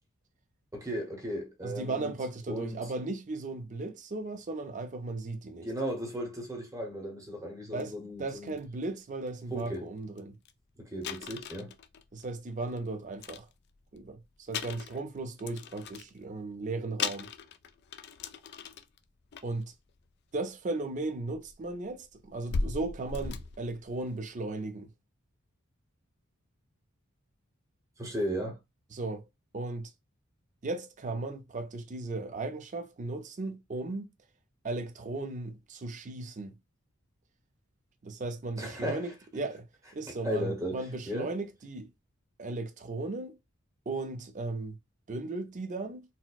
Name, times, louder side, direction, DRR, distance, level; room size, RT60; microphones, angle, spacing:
voice 1, 0.7-2.1 2.5-2.9 5.6-8.5 9.5-9.9 10.8-11.7 28.0-28.6 38.6-39.1 40.2-41.3, equal, 15° right, 0.8 m, -36 dB
voice 2, 1.6-5.7 7.7-10.4 12.1-13.5 13.9-17.3 19.4-19.7 20.3-24.9 28.9-29.2 29.5-29.9 30.6-34.1 34.6-36.6 38.0-39.6 39.9-41.9 42.4-43.4 43.9-44.8 45.1-46.0, right 2 dB, 35° right, 0.5 m, -36 dB
sound 1, 7.8-7.9 8.3-8.6 9.3-9.4 9.6-9.8 10.2-10.3 10.5-10.6 11.0-12.8 13.1-14.0 14.5-16.2 16.7-16.8 17.0-19.0 19.3-19.6 20.7-20.8 21.3-24.3, left 4 dB, 50° left, 0.4 m, -38 dB
4.1 x 2.1 x 2.3 m
head